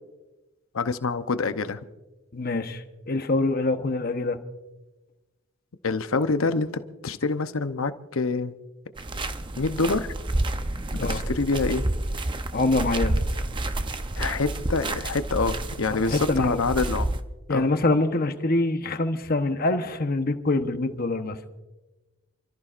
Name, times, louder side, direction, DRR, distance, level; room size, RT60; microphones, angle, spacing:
voice 1, 0.7-1.8 5.8-8.5 9.6-10.1 10.9-11.8 14.2-17.1 17.5-17.7, left 3 dB, 70° left, 10 dB, 0.8 m, -26 dB
voice 2, 2.3-4.4 11.0-11.2 12.5-13.2 15.9-16.7 17.5-21.4, left 2 dB, 45° left, 8 dB, 1.0 m, -25 dB
sound 1, 9.0-17.2, right 1 dB, 20° right, 0.6 m, -29 dB
29.0 x 14.0 x 2.5 m, 1.1 s
head